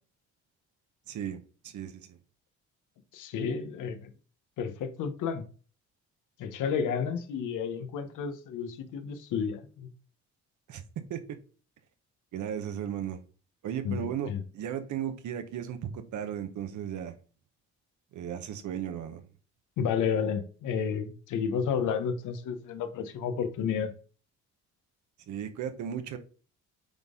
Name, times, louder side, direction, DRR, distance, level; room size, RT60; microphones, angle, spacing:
voice 1, 1.1-2.2 10.7-10.8 11.1-11.4 12.3-13.2 13.6-17.1 18.1-19.3 25.3-26.2, right 9 dB, 75° right, 1.1 m, -36 dB
voice 2, 3.1-4.1 4.6-5.4 6.4-9.9 13.8-14.4 19.8-23.9, left 6 dB, 85° left, 1.1 m, -31 dB
8.7 x 4.1 x 3.7 m
cardioid pair, 90°, 30 cm